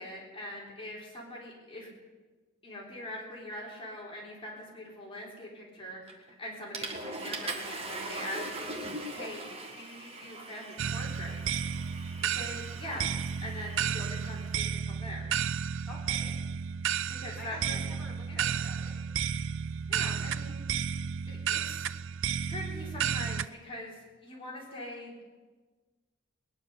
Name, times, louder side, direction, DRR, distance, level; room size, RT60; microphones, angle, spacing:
voice 1, 0.0-1.9 2.6-9.5 9.8-11.6 12.2-15.3 17.1-17.8 18.3-18.4 19.9-20.6 21.3-21.9 22.5-25.1, left 1 dB, 25° left, -3 dB, 3.5 m, -42 dB
Water / Toilet flush, 6.1-6.3 6.7-14.6, right 2 dB, 30° right, 1.7 m, -41 dB
sound 1, 10.8-23.5, right 7 dB, 65° right, 0.4 m, -32 dB
voice 2, 15.8-16.4 17.4-19.0, equal, 5° left, -6 dB, 3.2 m, -48 dB
20.0 x 10.0 x 6.8 m, 1.3 s
head